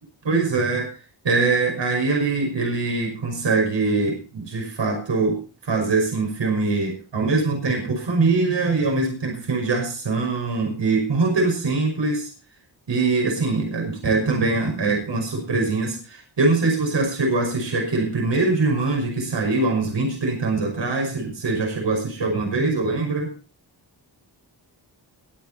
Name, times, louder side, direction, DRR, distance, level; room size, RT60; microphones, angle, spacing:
voice 1, 0.2-0.9 1.2-12.3 12.9-23.3, right 3 dB, 85° right, 1 dB, 5.9 m, -23 dB
22.0 x 8.6 x 4.2 m, 0.35 s
wide cardioid pair, 135°, 42 cm